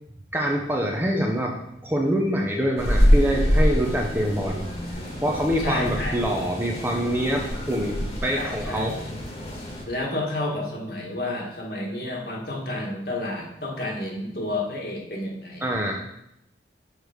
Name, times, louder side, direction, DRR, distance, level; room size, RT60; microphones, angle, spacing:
voice 1, 0.3-1.5 1.8-9.0 15.6-15.9, equal, 10° right, 0 dB, 0.8 m, -25 dB
sound 1, 2.8-9.8, equal, 35° left, 1.6 m, -25 dB
voice 2, 5.6-6.2 8.3-8.9 9.9-15.6, left 2 dB, 55° left, -1 dB, 1.7 m, -30 dB
6.6 x 4.8 x 5.1 m, 0.79 s
head